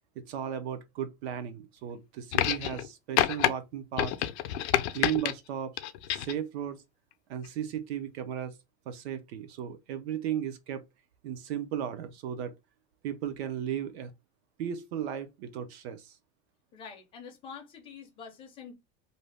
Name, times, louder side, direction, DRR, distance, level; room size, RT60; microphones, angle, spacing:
voice 1, 0.2-4.2 4.9-5.8 6.1-6.8 7.3-8.6 8.9-10.8 11.2-12.5 13.0-14.1 14.6-16.2, right 9 dB, 70° right, 0.5 m, -35 dB
sound 1, 2.3-2.9 3.2-3.5 4.0-5.3 5.8-6.4 7.4-7.5, left 13 dB, 80° left, 0.5 m, -28 dB
voice 2, 16.7-18.7, left 6 dB, 15° left, 0.5 m, -46 dB
2.6 x 2.0 x 3.2 m
supercardioid pair, 165°, 33 cm